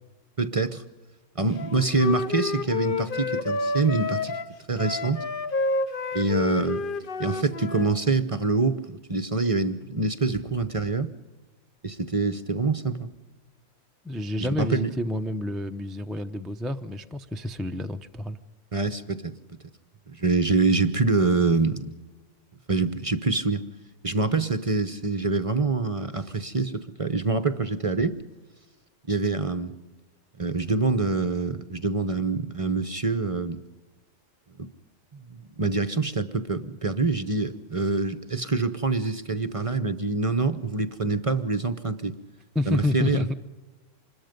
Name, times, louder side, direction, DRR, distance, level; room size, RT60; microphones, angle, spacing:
voice 1, 0.4-0.8 1.4-4.3 4.7-5.2 6.1-6.8 7.2-11.1 11.8-13.1 14.4-14.9 18.7-19.3 20.1-21.9 22.7-23.6 24.0-28.2 29.1-29.7 30.4-33.6 34.6-34.7 35.3-42.2 42.7-43.2, right 3 dB, 30° right, 11 dB, 0.8 m, -25 dB
Wind instrument woodwind instrument, 1.6-7.9, left 3 dB, 45° left, 1.0 m, -29 dB
voice 2, 14.0-18.4 42.5-43.3, left 1 dB, ahead, 5 dB, 0.5 m, -29 dB
26.0 x 21.5 x 5.2 m, 1.2 s
omnidirectional pair, 1.3 m